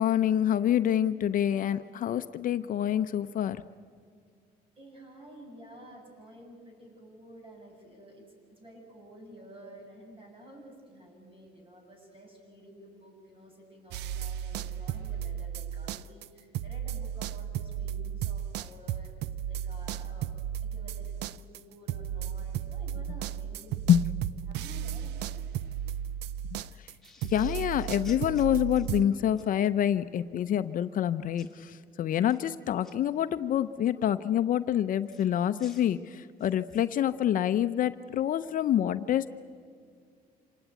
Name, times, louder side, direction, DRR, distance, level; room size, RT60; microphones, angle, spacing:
voice 1, 0.0-3.6 23.9-24.0 27.3-39.3, left 10 dB, 55° left, 12 dB, 0.7 m, -27 dB
voice 2, 4.8-19.1 19.5-20.3 20.6-24.0 24.4-25.4, right 1 dB, 30° right, 2 dB, 7.7 m, -51 dB
sound 1, 13.9-16.3 16.5-29.0, right 10 dB, 85° right, 0.6 m, -35 dB
sound 2, 27.0-29.5 31.4-31.6 32.1-32.9 35.1-36.9, left 2 dB, ahead, 3.2 m, -55 dB
26.5 x 19.0 x 9.1 m, 2.1 s
cardioid pair, 110°, 17 cm